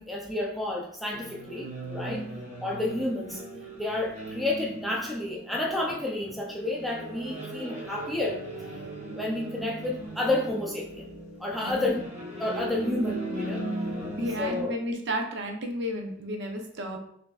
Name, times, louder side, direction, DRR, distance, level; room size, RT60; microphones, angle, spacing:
voice 1, 0.0-2.3 2.6-3.4 3.8-8.4 9.2-11.1 11.4-12.0 12.4-13.7 14.4-14.8, left 2 dB, ahead, -2 dB, 0.4 m, -30 dB
sound 1, 1.1-14.6, right 1 dB, 35° right, 0.9 m, -38 dB
sound 2, 5.5-6.4 8.3-8.9 10.0-10.6 11.5-12.1, left 1 dB, 45° left, 0.7 m, -51 dB
voice 2, 14.2-17.0, equal, 55° right, 3 dB, 0.6 m, -32 dB
5.2 x 2.6 x 2.3 m, 0.69 s
head